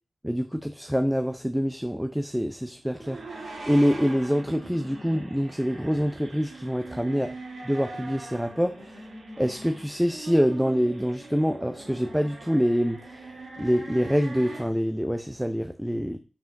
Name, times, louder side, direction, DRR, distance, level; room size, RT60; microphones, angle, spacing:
voice 1, 0.2-7.3 7.7-8.9 9.4-16.2, equal, ahead, 8 dB, 0.5 m, -26 dB
sound 1, 2.8-14.6, right 2 dB, 75° right, 2.7 m, -42 dB
5.8 x 5.0 x 6.3 m, 0.35 s
wide cardioid pair, 145°, 0 cm